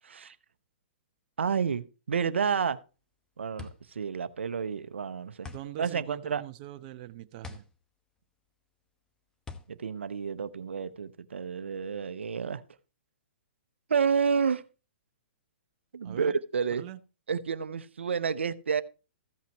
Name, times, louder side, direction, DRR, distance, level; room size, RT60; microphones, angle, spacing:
voice 1, 0.0-0.4 1.4-2.8 3.4-5.5 5.8-6.4 9.7-12.6 13.9-14.6 15.9-16.8 17.3-18.8, right 6 dB, 85° right, 0.7 m, -30 dB
sound 1, 2.8-11.1, left 4 dB, 10° left, 1.1 m, -48 dB
voice 2, 5.5-7.6 16.0-16.3 16.8-17.0, right 13 dB, 45° right, 0.7 m, -42 dB
14.5 x 5.7 x 4.5 m
hypercardioid pair, 135°, 6 cm